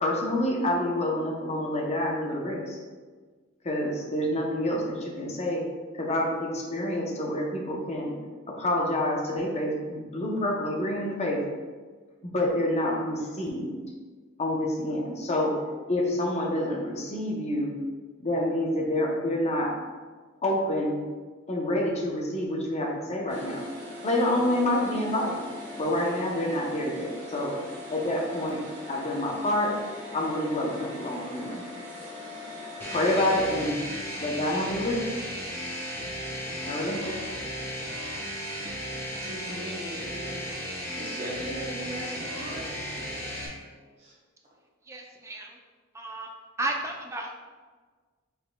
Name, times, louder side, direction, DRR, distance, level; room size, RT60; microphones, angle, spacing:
voice 1, 0.0-2.8 3.6-5.6 5.9-8.1 8.5-11.4 12.2-13.8 14.4-15.5 15.9-17.7 18.2-19.7 20.4-21.0 21.5-23.6 24.0-25.4 25.8-27.5 27.9-28.6 28.9-29.7 30.1-31.6 32.9-33.8 34.2-35.1 36.6-37.1, left 1 dB, 35° left, -1 dB, 0.7 m, -27 dB
sound 1, 23.3-33.7, left 2 dB, 65° right, 1.4 m, -41 dB
sound 2, 32.8-43.5, equal, 10° left, 1.2 m, -35 dB
voice 2, 39.2-42.9 44.0-44.1, right 1 dB, 35° right, -5 dB, 1.4 m, -39 dB
voice 3, 44.9-45.5 45.9-46.3 46.6-47.3, right 2 dB, 15° right, 0 dB, 0.5 m, -33 dB
5.5 x 4.2 x 2.2 m, 1.4 s
head